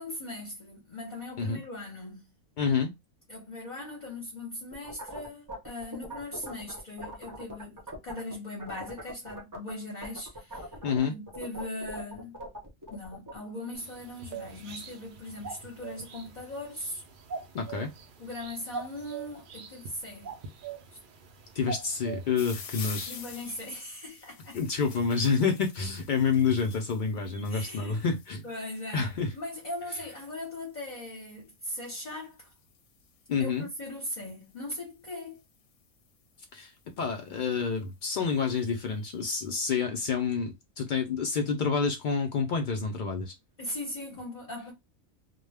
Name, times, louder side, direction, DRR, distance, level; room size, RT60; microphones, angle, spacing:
voice 1, 0.0-2.3 3.3-10.7 11.0-12.4 12.9-17.0 18.2-20.4 23.0-24.6 27.5-28.1 28.4-32.5 33.4-33.5 33.8-35.4 43.6-44.7, left 1 dB, 40° left, 0.8 m, -39 dB
voice 2, 2.6-2.9 10.8-11.1 17.5-17.9 21.5-23.1 24.5-28.4 28.9-29.3 33.3-33.7 36.5-36.7 37.0-43.3, left 5 dB, 85° left, 0.4 m, -28 dB
sound 1, 4.7-8.3 8.6-9.7 10.0-13.4, equal, 20° right, 0.5 m, -41 dB
sound 2, 13.7-23.6, right 5 dB, 80° right, 0.4 m, -43 dB
sound 3, 22.3-35.6 36.4-36.8 37.4-37.5 37.7-37.8 38.1-39.5, left 6 dB, 65° left, 0.9 m, -48 dB
2.2 x 2.1 x 3.3 m
omnidirectional pair, 1.4 m